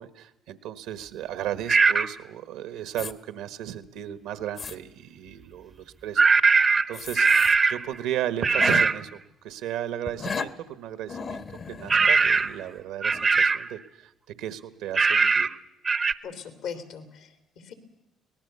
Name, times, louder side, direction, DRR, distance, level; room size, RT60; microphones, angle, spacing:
voice 1, 0.0-6.6 6.9-9.2 9.4-14.1 14.4-15.5, right 11 dB, 80° right, 12 dB, 1.4 m, -35 dB
sound 1, 1.7-2.1 6.2-7.9 8.4-9.0 11.9-12.6 13.0-13.7 15.0-15.6 15.9-16.1, right 4 dB, 35° right, 0.8 m, -20 dB
sound 2, 2.9-3.1 3.8-3.9 4.4-4.8 6.9-7.6 7.9-8.0 8.4-8.9 10.1-10.5 11.1-12.8 13.1-13.3, left 5 dB, 45° left, 1.2 m, -35 dB
voice 2, 16.2-17.7, left 7 dB, 75° left, 7 dB, 3.1 m, -39 dB
24.0 x 18.5 x 6.9 m, 0.90 s
supercardioid pair, 75°, 0 cm